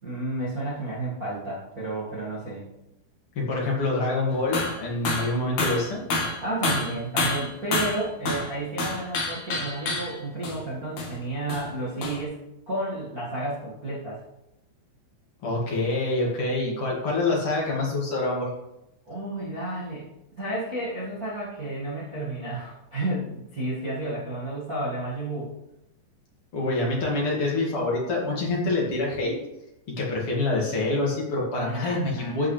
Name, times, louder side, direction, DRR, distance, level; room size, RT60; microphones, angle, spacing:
voice 1, 0.0-2.7 6.4-14.2 19.0-25.5 31.6-32.4, right 1 dB, 70° right, -8 dB, 0.8 m, -32 dB
voice 2, 3.3-6.0 15.4-18.5 26.5-29.4 30.0-32.5, left 2 dB, 40° left, -4 dB, 2.3 m, -26 dB
sound 1, 4.5-4.8 5.0-5.3 5.6-8.5 8.8-10.2 10.4-10.6 11.0-11.1 11.5-11.7 12.0-12.2, left 2 dB, 55° left, 2.0 m, -28 dB
14.5 x 5.5 x 3.3 m, 0.88 s
omnidirectional pair, 5.2 m